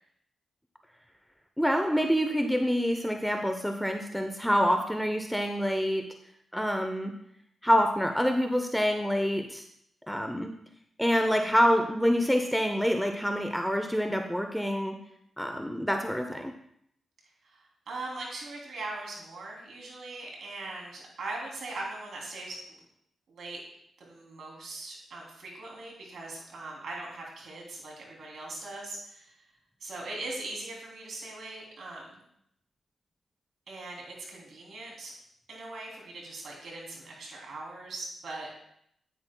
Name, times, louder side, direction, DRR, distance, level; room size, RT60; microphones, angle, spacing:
voice 1, 1.6-6.1 6.5-7.1 7.6-9.6 10.1-10.5 11.0-15.0 15.4-16.5, equal, ahead, 5 dB, 0.7 m, -26 dB
voice 2, 17.5-22.8 23.3-23.6 24.0-29.4 29.8-32.2 33.7-35.1 35.5-38.5, right 2 dB, 75° right, -2 dB, 3.0 m, -40 dB
9.7 x 9.5 x 2.3 m, 0.72 s
cardioid pair, 60°, 0 cm